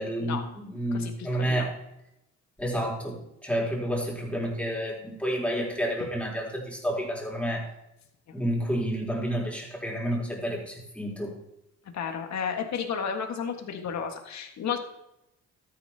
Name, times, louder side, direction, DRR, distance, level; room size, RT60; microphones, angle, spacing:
voice 1, 0.0-1.7 2.6-7.7 8.3-11.4, equal, 5° left, -3 dB, 3.7 m, -30 dB
voice 2, 0.9-1.7 11.9-14.8, left 7 dB, 65° left, 4 dB, 1.7 m, -32 dB
13.0 x 10.0 x 2.9 m, 0.85 s
cardioid pair, 90°, 30 cm